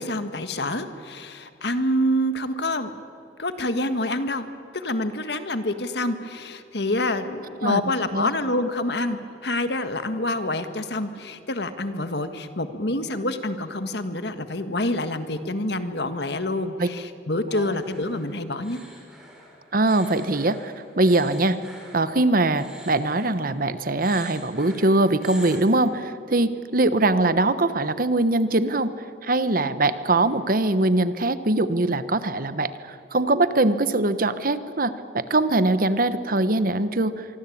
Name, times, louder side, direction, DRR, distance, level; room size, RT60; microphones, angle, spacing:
voice 1, 0.0-2.9 3.4-4.5 4.7-18.8, left 1 dB, 65° left, 9 dB, 1.7 m, -27 dB
sound 1, 17.5-23.7 24.0-25.6, equal, 5° right, 5.4 m, -44 dB
voice 2, 19.7-21.6 21.9-28.9 29.2-37.3, right 2 dB, 50° right, 13 dB, 1.1 m, -22 dB
25.5 x 24.0 x 8.7 m, 2.6 s
head